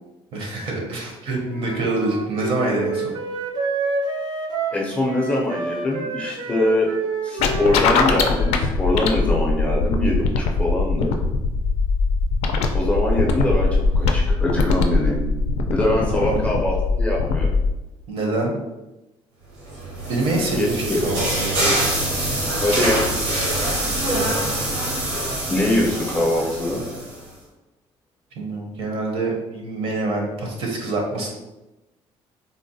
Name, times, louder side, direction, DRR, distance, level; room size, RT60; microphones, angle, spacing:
voice 1, 0.3-3.0 16.0-16.4 18.1-18.5 20.1-21.7 24.1-24.3 28.4-31.3, right 2 dB, 60° right, 0 dB, 0.7 m, -26 dB
Wind instrument woodwind instrument, 1.4-8.7, right 3 dB, 45° right, 0.4 m, -29 dB
voice 2, 4.7-6.9 7.2-11.2 12.7-15.2 15.7-17.5 20.6-21.2 22.6-23.1 25.5-26.8, left 1 dB, 10° left, -2 dB, 0.5 m, -23 dB
sound 1, 7.4-17.7, left 4 dB, 80° left, 0.4 m, -21 dB
sound 2, 19.7-27.2, right 1 dB, 80° right, 1.1 m, -24 dB
3.7 x 2.1 x 2.6 m, 1.0 s
cardioid pair, 160°, 10 cm